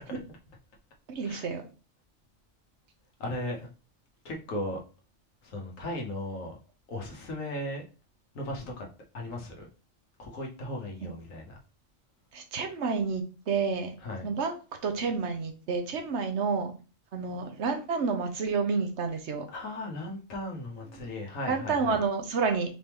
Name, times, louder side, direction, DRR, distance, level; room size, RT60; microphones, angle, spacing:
voice 1, 1.1-1.6 12.3-13.9 14.2-14.6 14.8-16.7 17.1-19.4 20.9-21.1 21.5-22.7, right 5 dB, 65° right, 1.1 m, -29 dB
voice 2, 3.2-3.7 4.2-4.8 5.4-6.5 6.9-7.8 8.3-8.9 9.1-9.7 10.2-11.6 14.0-14.3 19.5-22.0, left 1 dB, 90° left, 1.5 m, -36 dB
4.4 x 3.4 x 2.9 m
omnidirectional pair, 1.3 m